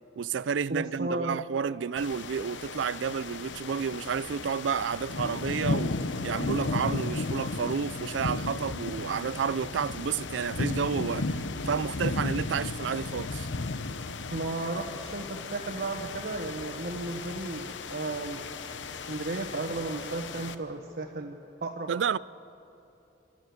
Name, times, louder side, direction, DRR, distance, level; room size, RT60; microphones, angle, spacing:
voice 1, 0.2-6.0 6.2-13.5 21.9-22.2, right 6 dB, 80° right, 0.4 m, -31 dB
voice 2, 0.7-1.4 14.3-18.4 18.7-21.9, right 2 dB, 60° right, 1.3 m, -34 dB
sound 1, 2.0-20.6, left 3 dB, 85° left, 0.9 m, -35 dB
27.0 x 13.5 x 7.9 m
head